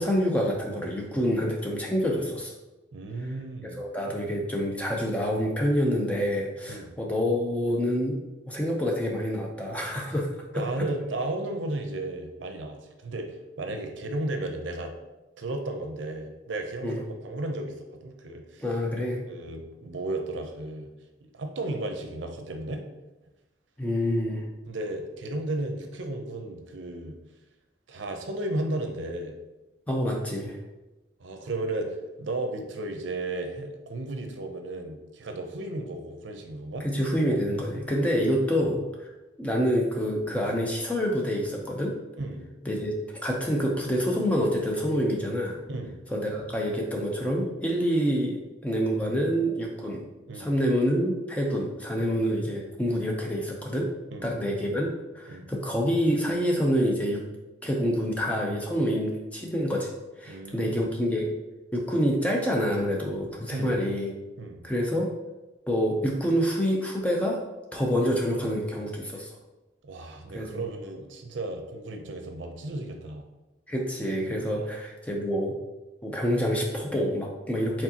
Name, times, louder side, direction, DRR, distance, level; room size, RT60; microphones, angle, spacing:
voice 1, 0.0-2.5 3.8-8.2 8.5-10.3 10.5-10.6 16.8-17.0 18.6-19.2 23.8-24.5 29.9-30.6 36.8-39.1 39.4-41.9 42.6-45.6 46.1-50.0 50.3-53.9 54.2-54.9 55.1-57.2 57.6-59.9 60.2-61.3 61.7-64.1 64.6-65.1 65.7-67.4 67.7-69.3 70.3-70.7 73.7-75.5 76.0-77.8, equal, 5° left, 0 dB, 0.5 m, -27 dB
voice 2, 2.9-3.8 6.7-6.9 10.5-14.9 15.4-18.6 19.3-20.9 21.2-22.8 24.7-27.1 27.9-29.4 31.2-36.9 42.2-42.4 45.7-45.9 50.3-50.5 52.0-52.2 54.1-54.3 55.3-55.5 60.3-60.8 63.5-63.8 64.4-64.6 69.1-69.2 69.8-73.2 74.5-74.7, right 2 dB, 80° right, 4 dB, 0.6 m, -34 dB
4.7 x 3.7 x 2.8 m, 1.1 s
head